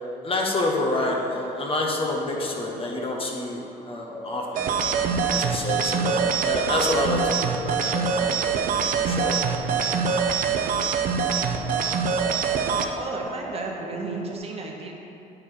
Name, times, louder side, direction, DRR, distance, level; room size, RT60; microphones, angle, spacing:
voice 1, 0.2-4.6 5.3-8.7 9.0-9.4, left 2 dB, 35° left, 0 dB, 1.2 m, -28 dB
sound 1, 2.0-14.4, equal, ahead, 1.3 m, -41 dB
sound 2, 4.5-12.9, right 6 dB, 55° right, 0.6 m, -24 dB
voice 2, 13.0-14.9, right 3 dB, 35° right, 0 dB, 1.0 m, -33 dB
8.7 x 4.7 x 4.5 m, 2.8 s
cardioid pair, 110°, 17 cm